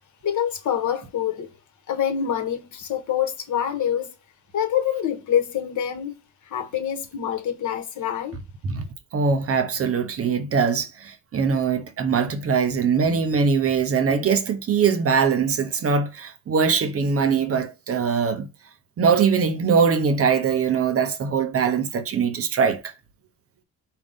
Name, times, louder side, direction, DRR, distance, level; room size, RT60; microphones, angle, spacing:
voice 1, 0.2-1.5 1.9-4.1 4.5-6.2 6.4-8.4, left 9 dB, 65° left, 1.2 m, -26 dB
voice 2, 9.1-18.5 19.0-22.9, right 6 dB, 45° right, 0.8 m, -22 dB
5.2 x 2.4 x 3.5 m
cardioid pair, 115°, 32 cm